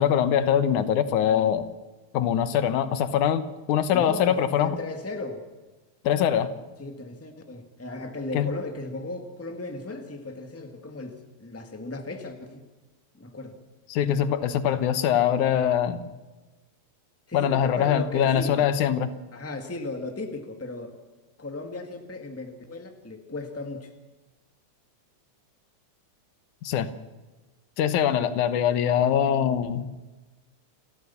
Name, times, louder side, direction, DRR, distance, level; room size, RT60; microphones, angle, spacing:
voice 1, 0.0-1.7 2.1-3.4 3.7-4.7 6.0-6.5 8.3-8.5 13.9-16.0 17.3-19.1 26.6-26.9 27.8-29.9, left 9 dB, 90° left, 12 dB, 2.5 m, -23 dB
voice 2, 3.9-5.4 6.8-12.7 13.1-13.6 17.3-18.7 19.3-21.0 21.4-23.9, left 2 dB, 5° left, 5 dB, 1.4 m, -36 dB
29.5 x 13.5 x 7.1 m, 1.2 s
omnidirectional pair, 3.4 m